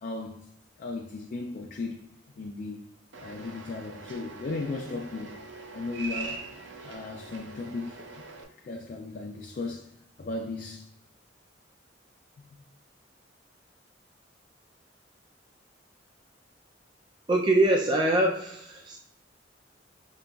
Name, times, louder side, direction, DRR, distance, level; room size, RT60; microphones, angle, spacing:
voice 1, 0.0-0.5 0.8-2.1 2.4-2.9 3.2-5.4 5.7-6.4 6.8-8.0 8.6-9.9 10.2-10.9, left 3 dB, 45° left, 0.4 m, -36 dB
sound 1, 3.1-8.4, right 3 dB, 75° right, 0.6 m, -42 dB
voice 2, 17.3-19.0, right 1 dB, 25° right, 0.3 m, -23 dB
5.1 x 2.9 x 2.2 m
head